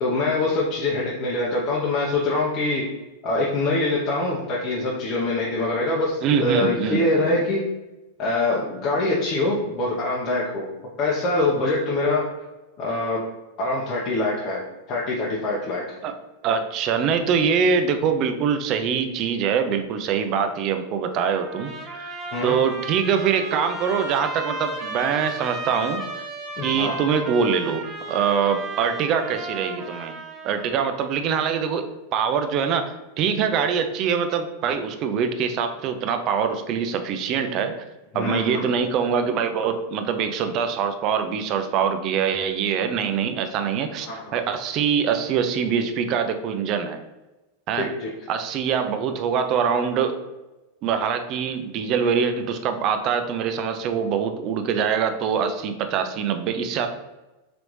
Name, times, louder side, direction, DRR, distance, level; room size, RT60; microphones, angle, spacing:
voice 1, 0.0-2.8 3.2-7.6 8.2-10.6 11.0-12.2 12.8-13.2 13.6-14.6 14.9-16.0 22.3-22.6 26.6-26.9 38.1-38.7 44.1-44.4 47.8-48.1, left 2 dB, 45° left, -4 dB, 0.8 m, -24 dB
voice 2, 6.2-7.4 16.0-16.1 16.4-22.2 22.4-26.3 26.6-30.2 30.4-31.8 32.1-32.9 33.2-37.7 38.1-47.0 47.7-47.9 48.3-50.1 50.8-56.9, right 7 dB, 45° right, 7 dB, 0.5 m, -24 dB
Trumpet, 21.2-30.9, right 3 dB, 15° right, 0.9 m, -34 dB
3.9 x 3.3 x 3.1 m, 1.0 s
hypercardioid pair, 120°, 0 cm